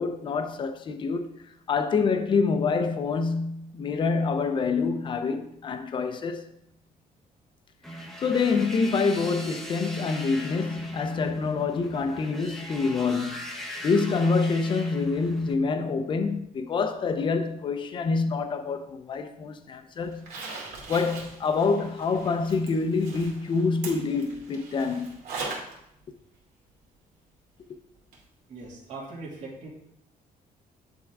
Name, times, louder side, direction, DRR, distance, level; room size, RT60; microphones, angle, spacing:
voice 1, 0.0-1.4 1.7-6.5 8.2-13.5 13.8-20.3 20.9-25.2, left 4 dB, 35° left, 0.7 m, -26 dB
sound 1, 7.8-15.5, left 1 dB, ahead, 0.8 m, -40 dB
Zipper (clothing), 20.1-25.8 26.1-26.2 28.1-28.2 28.6-28.7, right 3 dB, 80° right, 2.6 m, -40 dB
voice 2, 28.5-29.7, right 3 dB, 50° right, 2.6 m, -40 dB
10.5 x 3.8 x 4.6 m
cardioid pair, 170°, 15 cm